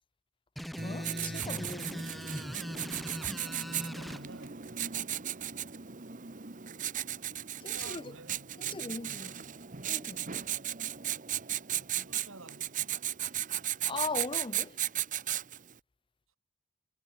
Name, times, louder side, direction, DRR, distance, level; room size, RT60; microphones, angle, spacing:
sound 1, 0.6-4.2, equal, ahead, 2.0 m, -40 dB
voice 1, 0.8-2.1 7.6-8.1 8.7-9.3 9.9-10.3 13.8-14.8, left 3 dB, 25° left, 0.7 m, -39 dB
Writing, 0.8-15.7, right 11 dB, 40° right, 1.2 m, -36 dB
voice 2, 3.9-4.7 7.6-9.6 11.9-13.0, right 2 dB, 85° right, 4.1 m, -52 dB
head